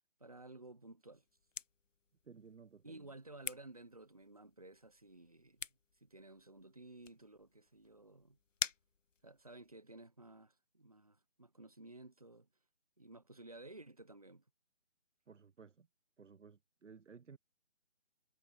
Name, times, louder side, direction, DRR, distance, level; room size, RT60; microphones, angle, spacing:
voice 1, 0.2-1.2 2.8-5.7 6.0-8.4 9.2-12.5 13.0-14.4, right 2 dB, 30° right, 0.8 m, -55 dB
sound 1, 1.1-9.7, left 6 dB, 80° left, 1.0 m, -49 dB
voice 2, 2.2-3.1 15.3-15.9 16.2-17.4, right 5 dB, 75° right, 1.0 m, -57 dB
figure-of-eight pair, 175°, 37 cm